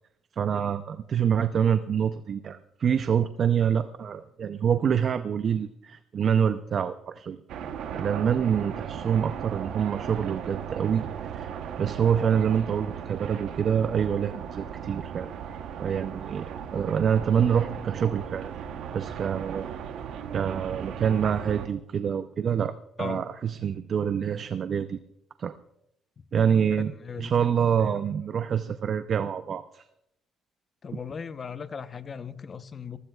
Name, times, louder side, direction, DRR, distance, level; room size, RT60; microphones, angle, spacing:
voice 1, 0.4-7.4 7.9-11.5 11.8-15.3 15.8-18.5 18.9-19.7 20.3-25.0 25.4-25.5 26.3-26.9 27.2-29.8, right 8 dB, 50° right, 0.5 m, -26 dB
sound 1, 7.5-21.7, right 8 dB, 75° right, 1.0 m, -37 dB
voice 2, 26.7-27.3 30.8-33.0, left 6 dB, 35° left, 0.8 m, -38 dB
26.0 x 15.5 x 2.4 m
cardioid pair, 115°, 0 cm